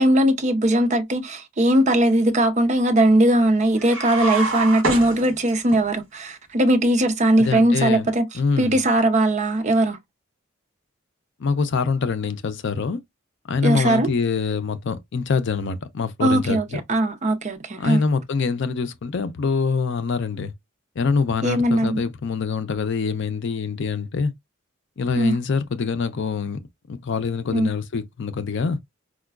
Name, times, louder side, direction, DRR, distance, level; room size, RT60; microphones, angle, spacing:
voice 1, 0.0-8.2 8.6-10.0 13.6-14.1 16.2-18.0 21.4-22.0 25.2-25.3 27.5-27.7, right 1 dB, 35° right, 0.6 m, -19 dB
sound 1, 3.8-5.8, right 3 dB, 75° right, 1.1 m, -26 dB
voice 2, 7.4-8.1 8.3-8.8 11.4-13.0 13.5-16.8 17.8-20.5 21.0-24.3 25.0-26.6 26.9-28.8, left 5 dB, 60° left, 0.5 m, -24 dB
4.8 x 2.2 x 2.3 m
head